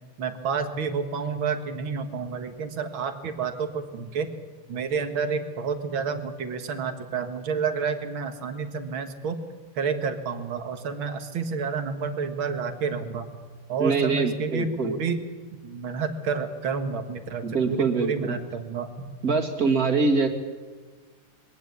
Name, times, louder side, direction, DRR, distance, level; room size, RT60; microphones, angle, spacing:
voice 1, 0.2-4.3 4.7-9.4 9.8-13.3 13.7-15.2 15.6-18.9, right 5 dB, 75° right, 8 dB, 2.4 m, -29 dB
voice 2, 13.8-14.9 17.4-18.4 19.2-20.3, right 4 dB, 45° right, 4 dB, 2.5 m, -24 dB
22.0 x 17.5 x 8.4 m, 1.5 s
omnidirectional pair, 2.3 m